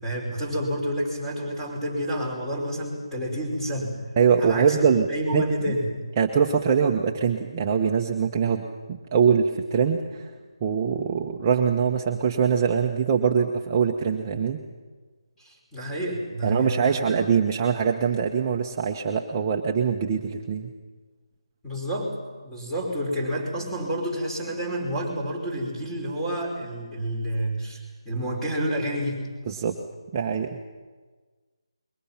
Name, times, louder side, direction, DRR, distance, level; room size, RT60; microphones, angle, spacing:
voice 1, 0.0-4.0 4.4-6.0 15.4-17.2 21.6-22.2 22.4-29.2, equal, 5° left, -3 dB, 5.3 m, -29 dB
voice 2, 4.2-5.7 6.2-10.3 10.6-14.6 16.4-20.7 29.5-29.8 30.1-30.6, right 6 dB, 25° right, 1 dB, 1.2 m, -23 dB
28.0 x 22.5 x 6.0 m, 1.4 s
figure-of-eight pair, 160°, 3 cm